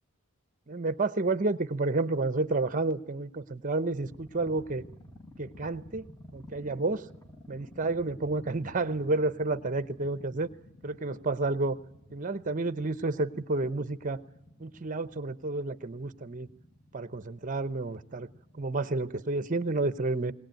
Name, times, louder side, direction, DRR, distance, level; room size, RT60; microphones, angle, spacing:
voice 1, 0.7-4.8 5.4-6.1 6.3-7.0 7.5-10.5 10.8-11.8 12.1-14.2 14.6-16.5 16.9-18.3 18.6-20.3, right 3 dB, 40° right, 14 dB, 0.8 m, -30 dB
sound 1, 3.9-18.8, left 1 dB, 15° left, 1.5 m, -52 dB
20.5 x 19.0 x 9.1 m, 0.85 s
head